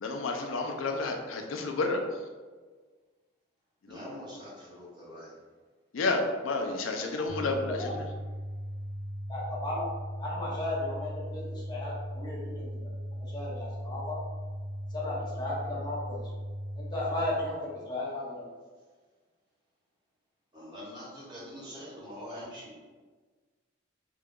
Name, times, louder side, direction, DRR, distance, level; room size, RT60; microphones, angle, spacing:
voice 1, 0.0-2.2 3.8-4.0 5.9-8.0, left 3 dB, 85° left, 3 dB, 0.5 m, -31 dB
voice 2, 3.9-5.4 20.5-22.8, equal, 25° right, -8 dB, 1.3 m, -44 dB
sound 1, 7.3-17.3, equal, 70° left, 1.1 m, -38 dB
voice 3, 9.3-9.9 10.2-14.2 14.9-16.3 16.8-18.5, left 1 dB, 20° left, -6 dB, 0.9 m, -35 dB
3.8 x 2.3 x 3.6 m, 1.4 s
head